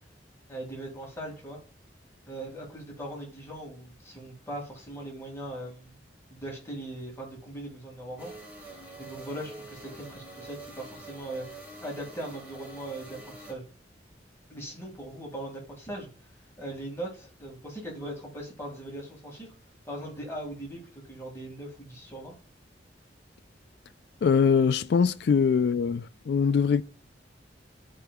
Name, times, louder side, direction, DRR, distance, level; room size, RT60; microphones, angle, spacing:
voice 1, 0.5-1.6 2.3-6.0 6.3-8.3 9.0-13.6 14.5-16.1 16.6-19.5 19.8-22.3, right 1 dB, 15° left, 1.8 m, -40 dB
sound 1, 8.2-13.5, right 2 dB, 10° right, 1.7 m, -46 dB
voice 2, 24.2-26.8, left 6 dB, 65° left, 0.3 m, -23 dB
10.5 x 4.7 x 2.2 m
head